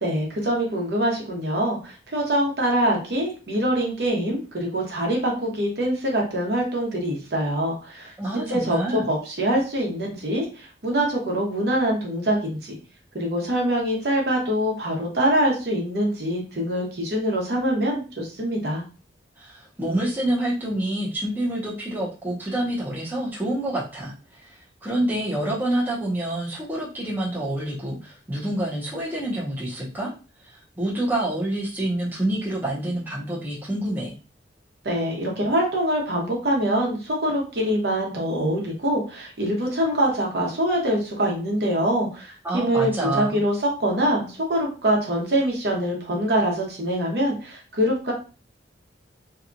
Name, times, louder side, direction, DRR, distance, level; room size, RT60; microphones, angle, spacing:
voice 1, 0.0-12.8 13.1-18.8 34.8-48.1, right 1 dB, 60° right, -1 dB, 0.9 m, -24 dB
voice 2, 8.2-9.1 19.4-30.1 30.4-34.1 42.4-43.4, right 1 dB, 10° right, -5 dB, 0.7 m, -27 dB
2.8 x 2.3 x 2.5 m, 0.34 s
head